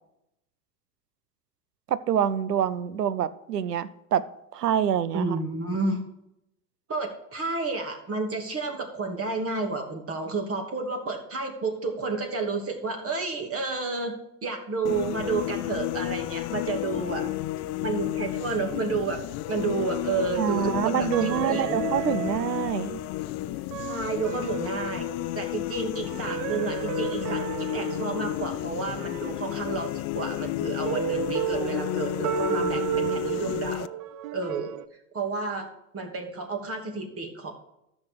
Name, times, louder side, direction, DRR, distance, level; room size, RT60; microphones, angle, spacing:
voice 1, 1.9-4.2 4.5-5.4 20.4-23.0, right 9 dB, 85° right, 17 dB, 0.8 m, -26 dB
voice 2, 5.1-6.0 6.9-14.1 14.4-17.3 17.8-21.8 23.8-25.1 25.3-33.9 34.3-34.7 35.1-35.7 35.9-37.5, right 4 dB, 30° right, 4 dB, 2.8 m, -31 dB
sound 1, 14.9-33.9, left 16 dB, 35° left, 0.4 m, -32 dB
sound 2, 21.1-23.2 23.7-25.4 26.0-29.5 30.9-34.9, right 10 dB, 45° right, 0.7 m, -33 dB
13.5 x 6.6 x 4.8 m, 0.83 s
hypercardioid pair, 80°, 47 cm